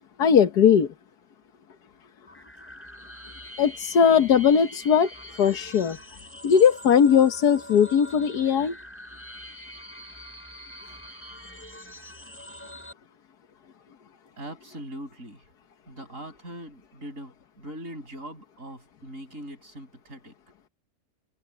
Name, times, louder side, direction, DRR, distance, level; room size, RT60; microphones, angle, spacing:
voice 1, 0.2-0.9 3.6-5.1 5.4-6.0 6.4-8.8, left 7 dB, 90° left, 1.8 m, -19 dB
sound 1, 2.3-12.9, equal, 10° left, 6.0 m, -44 dB
voice 2, 14.4-15.5 15.9-20.3, right 1 dB, 55° right, 7.4 m, -41 dB
omnidirectional pair, 1.6 m